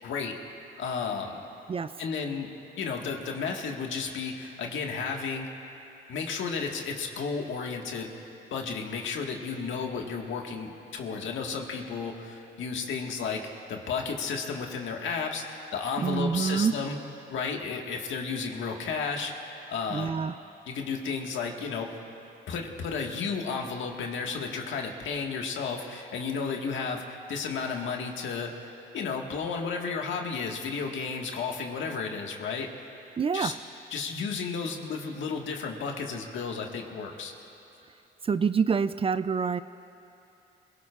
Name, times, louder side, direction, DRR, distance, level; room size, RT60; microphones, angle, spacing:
voice 1, 0.0-0.3 0.8-1.4 2.0-2.5 2.8-5.5 6.1-17.0 17.3-20.1 20.7-21.9 22.5-32.7 33.3-33.5 33.9-37.3, left 5 dB, 75° left, 1 dB, 1.7 m, -33 dB
voice 2, 16.0-16.7 19.9-20.3 33.2-33.6 38.2-39.6, right 6 dB, 30° right, 14 dB, 0.4 m, -26 dB
27.0 x 17.5 x 2.5 m, 2.8 s
cardioid pair, 90°, 20 cm